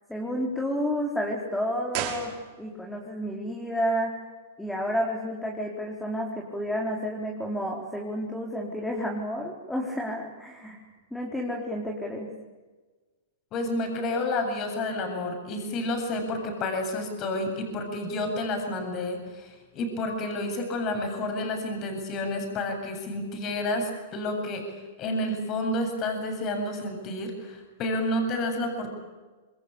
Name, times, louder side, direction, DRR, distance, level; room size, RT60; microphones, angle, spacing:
voice 1, 0.1-2.3 2.6-4.2 4.6-10.8 11.1-12.3, equal, 5° left, -1 dB, 4.2 m, -30 dB
sound 1, 1.9-3.0 3.2-3.3, right 10 dB, 45° right, 6.1 m, -34 dB
voice 2, 13.5-28.9, left 1 dB, 35° left, 4 dB, 7.8 m, -30 dB
27.0 x 22.5 x 8.6 m, 1.3 s
hypercardioid pair, 125°, 0 cm